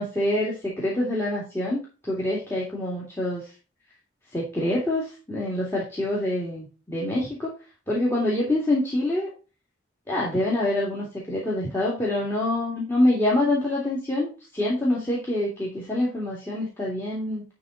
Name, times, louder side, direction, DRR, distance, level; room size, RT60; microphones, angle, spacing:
voice 1, 0.0-3.5 4.3-7.5 7.9-9.3 10.1-17.4, left 1 dB, 10° left, -6 dB, 2.3 m, -26 dB
11.0 x 3.9 x 4.0 m, 0.33 s
head